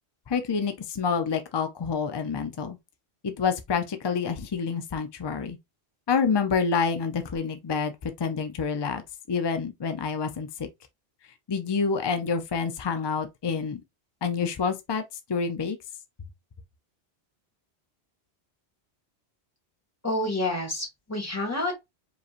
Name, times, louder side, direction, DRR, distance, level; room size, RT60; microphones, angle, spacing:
voice 1, 0.3-2.8 3.2-5.6 6.1-9.0 9.3-10.5 11.5-13.8 14.2-15.0 15.3-15.8, left 5 dB, 45° left, 0.3 m, -27 dB
voice 2, 20.0-21.9, left 1 dB, 15° left, 1.8 m, -29 dB
4.9 x 3.2 x 2.4 m
omnidirectional pair, 1.1 m